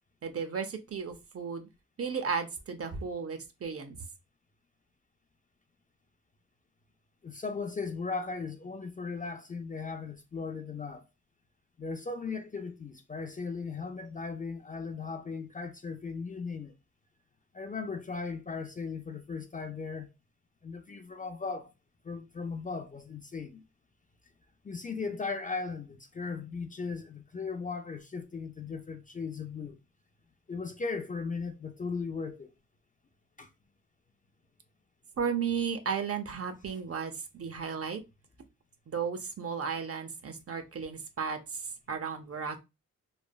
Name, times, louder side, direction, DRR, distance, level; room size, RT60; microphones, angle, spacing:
voice 1, 0.2-1.7 2.0-4.0 35.2-38.0 38.9-42.6, right 6 dB, 50° right, 0.6 m, -34 dB
voice 2, 7.2-11.0 11.8-16.7 17.5-20.1 20.6-21.7 22.0-23.6 24.6-29.8 30.5-32.5 33.4-33.5, left 4 dB, 25° left, 0.3 m, -37 dB
3.2 x 2.0 x 2.2 m
cardioid pair, 70°, 31 cm